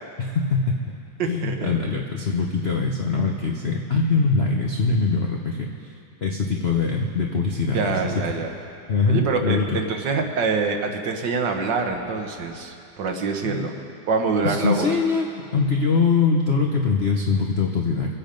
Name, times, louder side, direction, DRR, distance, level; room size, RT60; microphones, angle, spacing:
voice 1, 0.2-1.0 1.2-5.9 6.2-8.2 8.9-9.8 13.4-13.6 14.4-18.2, left 4 dB, 55° left, 0 dB, 0.7 m, -23 dB
voice 2, 1.2-1.7 7.7-8.5 9.0-13.7 14.1-14.9, right 4 dB, 65° right, 4 dB, 1.6 m, -25 dB
23.5 x 8.6 x 5.2 m, 2.5 s
omnidirectional pair, 2.2 m